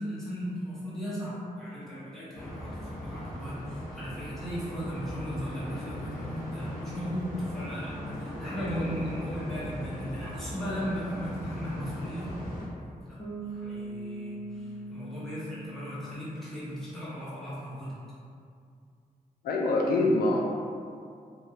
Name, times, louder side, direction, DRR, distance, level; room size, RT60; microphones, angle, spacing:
voice 1, 0.0-12.4 13.1-13.2 13.5-18.0, equal, ahead, -11 dB, 1.2 m, -37 dB
sound 1, 2.3-12.7, equal, 60° left, 0.9 m, -38 dB
Bass guitar, 13.2-16.9, right 2 dB, 25° left, 0.7 m, -41 dB
voice 2, 19.4-20.4, left 2 dB, 90° left, -1 dB, 0.4 m, -24 dB
3.2 x 2.3 x 2.7 m, 2.3 s
wide cardioid pair, 110°, 15 cm